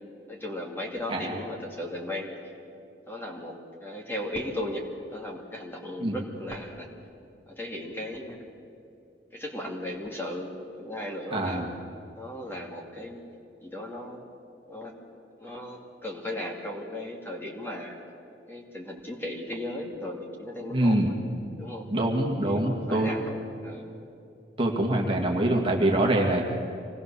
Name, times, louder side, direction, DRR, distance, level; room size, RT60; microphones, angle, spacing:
voice 1, 0.3-2.5 3.1-4.8 5.1-6.9 7.5-8.5 9.3-11.6 12.1-13.2 13.6-14.2 14.7-14.9 15.4-18.0 18.5-21.1 21.6-21.9 22.4-23.9, left 1 dB, 10° left, 0 dB, 2.4 m, -36 dB
voice 2, 11.3-11.7 20.7-21.1 21.9-23.1 24.6-26.4, right 1 dB, 30° right, 0 dB, 2.1 m, -24 dB
26.0 x 19.0 x 7.0 m, 2.7 s
head